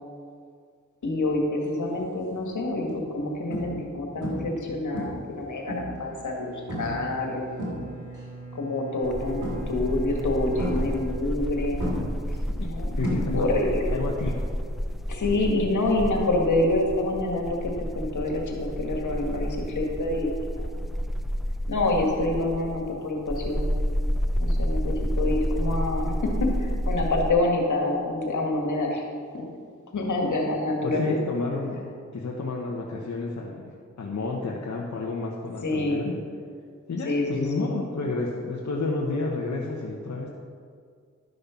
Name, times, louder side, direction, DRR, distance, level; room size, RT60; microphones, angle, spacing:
voice 1, 1.0-6.5 6.8-7.5 8.5-11.9 12.6-12.9 13.3-13.9 15.1-20.3 20.6-20.7 21.7-23.7 24.4-29.0 29.3-29.4 29.9-31.2 35.6-36.1 37.1-37.7, left 2 dB, 80° left, 0 dB, 2.0 m, -27 dB
sound 1, 1.9-2.2 2.8-2.9 3.5-3.9 4.2-4.6 4.9-6.1 6.7-7.0 7.4-8.2 9.4-9.9 10.6-11.5 11.8-13.7 13.9-14.4 16.4-16.5, equal, 90° right, 2.7 m, -32 dB
Bowed string instrument, 6.1-12.1, right 3 dB, 30° right, 1.7 m, -41 dB
sound 2, 9.0-27.3, equal, ahead, 0.5 m, -30 dB
voice 2, 13.0-13.5 13.9-14.3 30.8-33.7 34.0-36.2 36.9-40.3, left 3 dB, 65° left, -2 dB, 1.2 m, -30 dB
12.0 x 6.6 x 5.8 m, 2.1 s
cardioid pair, 55°, 30 cm